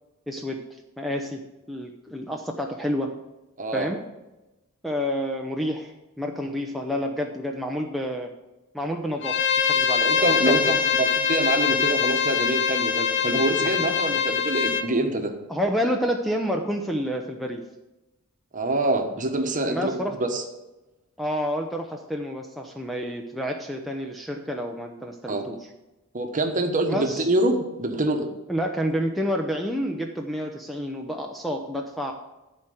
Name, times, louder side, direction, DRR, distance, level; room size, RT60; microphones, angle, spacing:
voice 1, 0.3-0.6 1.0-1.4 1.7-3.1 3.7-4.0 4.8-8.3 8.7-10.7 11.0-11.1 13.6-13.8 15.5-17.6 19.6-20.1 21.2-25.6 26.9-27.3 28.5-32.1, equal, ahead, 2 dB, 0.6 m, -29 dB
voice 2, 3.6-3.9 10.0-15.3 18.5-20.4 25.3-25.5 26.1-28.3, right 2 dB, 35° right, 5 dB, 1.1 m, -25 dB
Bowed string instrument, 9.2-14.9, left 7 dB, 50° left, 0.7 m, -23 dB
11.0 x 4.4 x 7.9 m, 1.0 s
head